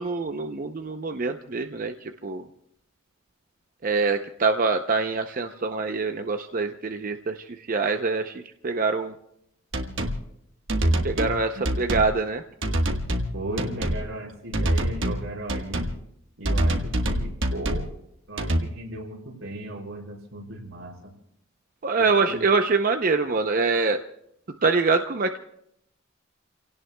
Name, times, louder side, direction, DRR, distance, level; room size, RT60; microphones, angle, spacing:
voice 1, 0.0-2.4 3.8-7.4 7.7-9.1 11.0-12.4 21.8-24.0 24.6-25.4, right 4 dB, 40° right, 6 dB, 0.6 m, -24 dB
sound 1, 9.7-10.2 10.7-11.4 11.6-12.1 12.6-13.3 13.6-14.0 14.5-15.2 15.5-15.9 16.4-17.9 18.4-18.6, right 1 dB, 65° right, 1.4 m, -25 dB
voice 2, 13.3-15.9 16.4-17.9 18.3-21.1 22.0-22.4, right 1 dB, 85° right, -3 dB, 4.6 m, -36 dB
30.0 x 17.5 x 2.2 m, 0.75 s
head